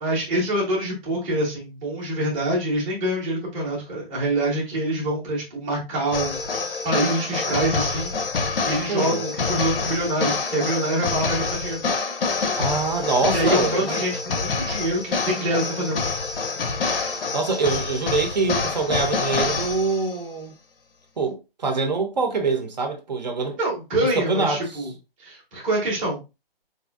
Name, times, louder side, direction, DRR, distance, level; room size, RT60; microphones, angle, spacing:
voice 1, 0.0-8.2 8.6-11.8 13.3-16.0 23.6-24.9 25.2-26.2, right 1 dB, 10° right, 0.7 m, -25 dB
sound 1, 6.1-20.2, left 4 dB, 65° left, 0.7 m, -27 dB
voice 2, 8.9-9.2 12.6-14.1 17.3-20.5 21.2-23.6 24.0-24.9, right 4 dB, 45° right, 0.7 m, -25 dB
4.2 x 2.6 x 2.4 m
hypercardioid pair, 165°, 30 cm